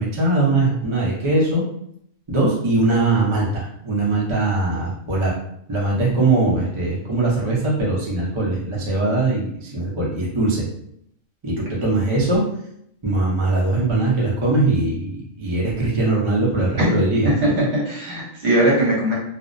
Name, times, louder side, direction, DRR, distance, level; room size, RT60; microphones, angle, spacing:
voice 1, 0.0-1.6 2.3-5.3 5.7-10.6 11.4-11.5 11.8-12.4 13.0-17.3, right 2 dB, 35° right, -5 dB, 0.5 m, -21 dB
voice 2, 17.2-19.1, right 1 dB, 60° right, -5 dB, 1.1 m, -19 dB
2.5 x 2.0 x 2.5 m, 0.73 s
omnidirectional pair, 1.3 m